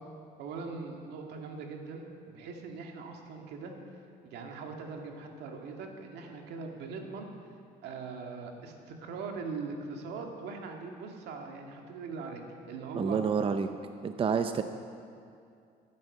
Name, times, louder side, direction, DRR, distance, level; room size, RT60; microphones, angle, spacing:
voice 1, 0.4-3.7 4.2-7.3 7.8-13.2 14.1-14.4, right 4 dB, 80° right, 2 dB, 1.9 m, -41 dB
voice 2, 12.9-13.7 14.0-14.6, right 6 dB, 35° right, 8 dB, 0.6 m, -28 dB
15.0 x 9.6 x 6.5 m, 2.4 s
cardioid pair, 110°, 17 cm